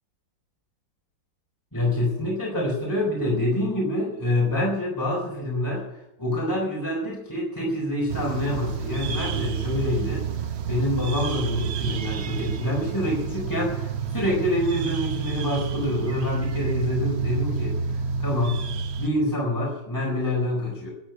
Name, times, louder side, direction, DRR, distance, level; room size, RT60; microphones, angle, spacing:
voice 1, 1.7-5.8 6.2-10.2 10.7-17.7 18.2-18.6 19.0-20.9, left 1 dB, 10° left, -3 dB, 4.5 m, -26 dB
sound 1, 8.1-19.1, right 6 dB, 60° right, 0.7 m, -29 dB
12.0 x 11.5 x 9.3 m, 0.83 s
omnidirectional pair, 2.0 m